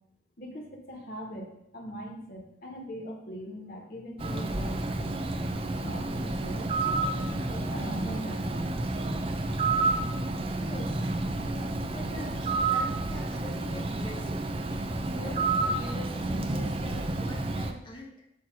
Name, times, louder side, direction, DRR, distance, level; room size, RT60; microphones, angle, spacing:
voice 1, 0.4-5.2 5.8-8.8, equal, 55° left, 0 dB, 1.6 m, -41 dB
Bird, 4.2-17.7, right 2 dB, 30° right, 0.5 m, -30 dB
voice 2, 10.6-11.1 11.4-14.5 15.1-18.1, left 2 dB, 25° left, 1 dB, 1.0 m, -43 dB
8.5 x 2.9 x 6.2 m, 0.76 s
head